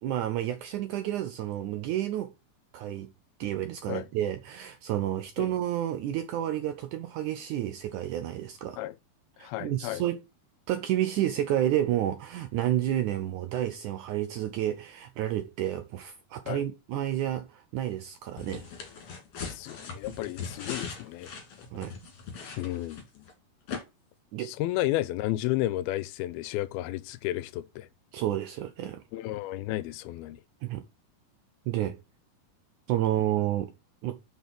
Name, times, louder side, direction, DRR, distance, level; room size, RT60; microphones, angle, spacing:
voice 1, 0.0-2.3 2.7-3.1 3.4-8.8 9.4-10.2 10.7-18.7 21.7-22.0 24.3-24.5 28.1-29.0 30.6-30.8 31.7-32.0 32.9-33.7 34.0-34.2, right 12 dB, 80° right, 1.8 m, -30 dB
voice 2, 9.4-10.0 16.5-16.6 19.5-21.3 22.6-23.2 24.4-27.9 29.1-30.4, left 16 dB, 90° left, 2.5 m, -32 dB
sound 1, 18.4-23.3 23.7-23.8, left 6 dB, 45° left, 2.9 m, -40 dB
6.5 x 5.6 x 5.9 m
omnidirectional pair, 4.3 m